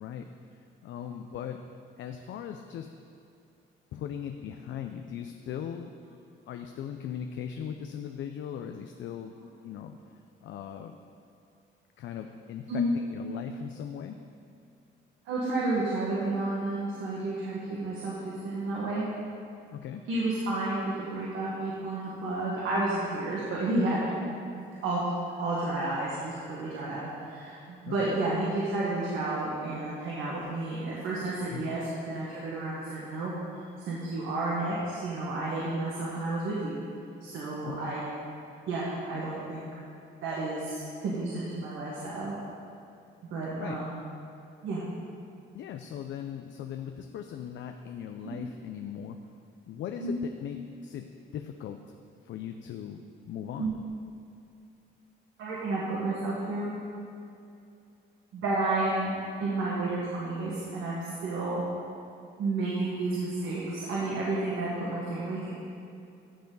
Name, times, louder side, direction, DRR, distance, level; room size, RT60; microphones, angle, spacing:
voice 1, 0.0-1.6 2.0-2.9 3.9-6.0 6.5-9.4 9.6-10.0 10.4-11.0 12.0-14.2 19.7-20.1 27.9-28.1 31.5-31.7 37.7-38.0 43.6-43.8 45.5-49.2 49.7-51.8 52.2-53.8, left 9 dB, 70° left, 6 dB, 0.5 m, -39 dB
voice 2, 15.3-19.1 20.1-24.1 24.5-25.0 25.4-33.3 33.9-36.8 37.2-38.0 38.7-39.7 40.2-42.3 43.3-44.0 44.6-44.8 48.2-48.3 50.0-50.1 53.6-53.8 55.4-56.7 58.3-59.1 59.4-61.6 62.4-65.5, right 2 dB, 80° right, -6 dB, 1.7 m, -31 dB
13.5 x 6.9 x 4.0 m, 2.6 s
cardioid pair, 90°, 20 cm